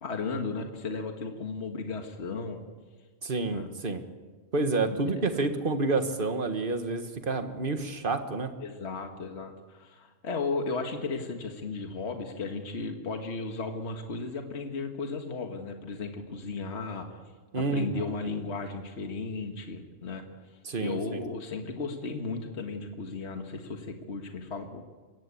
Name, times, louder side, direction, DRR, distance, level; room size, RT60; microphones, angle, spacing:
voice 1, 0.0-2.6 3.5-3.7 4.9-5.5 8.6-17.2 17.6-20.2 20.8-24.8, left 4 dB, 55° left, 4 dB, 1.9 m, -35 dB
voice 2, 3.2-4.0 4.5-8.5 17.5-18.1 20.6-21.3, right 3 dB, 40° right, 7 dB, 1.7 m, -29 dB
22.5 x 17.5 x 8.5 m, 1.4 s
omnidirectional pair, 1.4 m